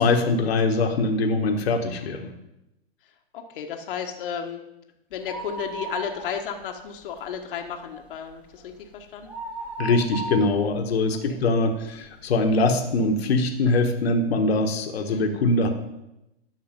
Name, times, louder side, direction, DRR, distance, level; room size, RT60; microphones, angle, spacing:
voice 1, 0.0-2.3 9.8-15.7, left 2 dB, 75° left, 5 dB, 1.4 m, -22 dB
voice 2, 3.3-4.6 5.1-9.3 11.3-11.4 14.9-15.3, left 7 dB, 55° left, 3 dB, 1.2 m, -33 dB
sound 1, 5.1-6.8 7.1-7.2 7.7-12.1 12.6-12.7 13.5-13.6 13.8-13.9, right 3 dB, 5° right, 1.6 m, -36 dB
10.5 x 6.4 x 5.2 m, 0.90 s
hypercardioid pair, 130°, 31 cm